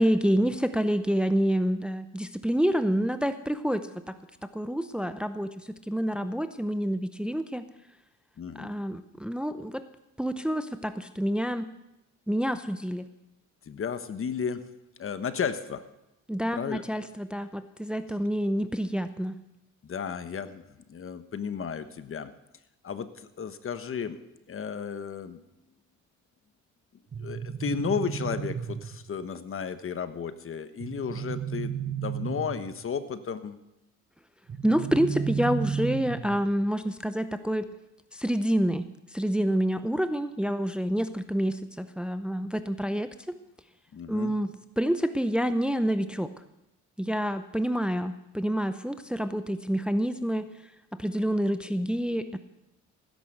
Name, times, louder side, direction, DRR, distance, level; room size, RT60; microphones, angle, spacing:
voice 1, 0.0-4.1 4.5-7.6 8.6-9.8 10.2-11.7 12.3-13.0 16.3-19.4 34.6-37.7 38.1-43.4 44.1-44.5 44.8-46.3 47.0-50.5 51.0-52.4, equal, 5° right, 10 dB, 0.7 m, -28 dB
voice 2, 8.4-8.7 13.7-14.6 15.0-15.8 16.5-16.8 19.8-22.3 22.8-24.2 24.5-25.4 27.2-33.6 43.9-44.3, left 6 dB, 45° left, 11 dB, 1.1 m, -33 dB
sound 1, 27.1-29.1 30.8-32.8 34.5-36.5, right 7 dB, 35° right, 1.3 m, -33 dB
16.0 x 10.5 x 6.6 m, 0.91 s
cardioid pair, 90°, 30 cm